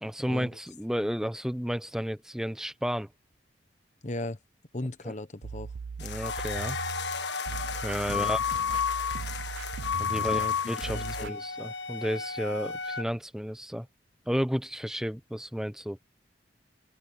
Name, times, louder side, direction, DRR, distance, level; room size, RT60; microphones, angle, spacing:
voice 1, 0.0-3.1 5.0-5.1 6.0-6.8 7.8-8.4 10.0-10.4 10.7-13.9 14.3-16.0, equal, 5° right, 0.9 m, -32 dB
voice 2, 4.0-4.4 4.7-5.7 8.1-8.3 10.1-10.6 10.9-11.4, left 1 dB, 40° left, 1.2 m, -36 dB
sound 1, 5.4-11.3, right 5 dB, 80° right, 0.4 m, -39 dB
sound 2, 6.0-11.2, left 7 dB, 70° left, 1.7 m, -38 dB
Wind instrument woodwind instrument, 6.2-13.1, left 6 dB, 85° left, 1.2 m, -33 dB
open air
head